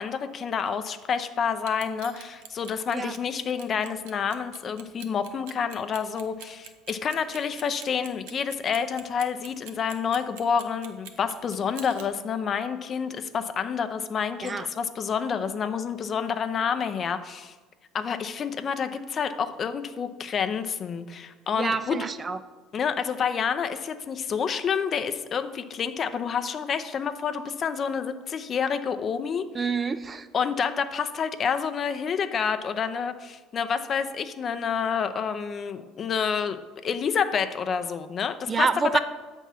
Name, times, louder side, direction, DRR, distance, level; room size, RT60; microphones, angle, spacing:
voice 1, 0.0-17.5 17.9-22.0 22.7-29.5 30.3-38.7 38.9-39.0, left 6 dB, 45° left, 10 dB, 0.5 m, -28 dB
Clock, 1.6-12.1, right 9 dB, 85° right, 0.6 m, -45 dB
voice 2, 21.6-22.4 29.5-30.3 38.5-39.0, right 5 dB, 30° right, 12 dB, 0.4 m, -27 dB
7.2 x 3.5 x 5.6 m, 1.3 s
supercardioid pair, 85°, 0 cm